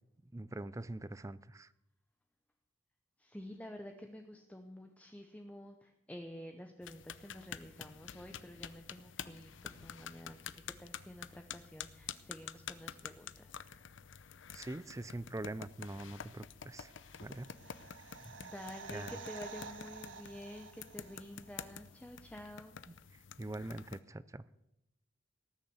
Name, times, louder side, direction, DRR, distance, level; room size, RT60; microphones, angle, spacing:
voice 1, 0.3-1.7 14.5-16.9 17.2-17.5 18.9-19.2 23.4-24.4, right 2 dB, 15° right, 17 dB, 0.5 m, -43 dB
voice 2, 3.2-13.7 17.2-17.3 17.6-17.8 18.2-22.8, equal, 5° left, 5 dB, 0.8 m, -50 dB
sound 1, 6.8-24.0, left 7 dB, 70° left, 0.7 m, -49 dB
sound 2, 16.8-21.7 22.0-22.1, right 5 dB, 70° right, 1.0 m, -51 dB
18.5 x 7.2 x 8.1 m, 0.83 s
head